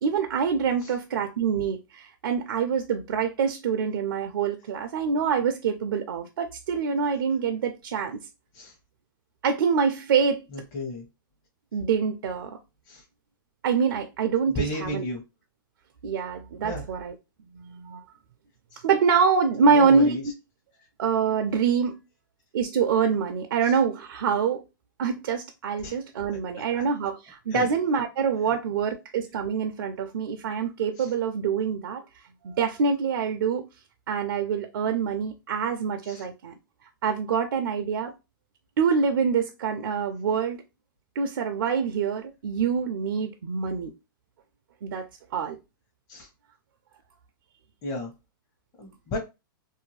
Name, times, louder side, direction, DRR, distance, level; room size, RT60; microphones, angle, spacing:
voice 1, 0.0-8.2 9.4-10.4 11.7-12.6 13.6-15.0 16.0-17.1 17.5-18.0 18.8-20.2 21.0-21.9 22.5-24.6 25.0-32.0 32.4-33.6 34.1-36.5 37.0-38.1 38.8-40.6 41.2-43.9 44.8-45.1 45.3-45.6, right 6 dB, 75° right, 0.5 m, -25 dB
voice 2, 10.5-11.1 12.9-13.0 14.5-15.2 16.6-16.8 18.7-18.8 19.7-20.3 23.6-23.7 25.8-26.0 26.3-26.4 27.5-27.7 28.5-28.6 31.0-31.1 36.0-36.2 46.1-46.3 47.8-48.1 48.8-49.2, left 1 dB, 35° left, 0.9 m, -33 dB
2.6 x 2.2 x 3.1 m
hypercardioid pair, 125°, 12 cm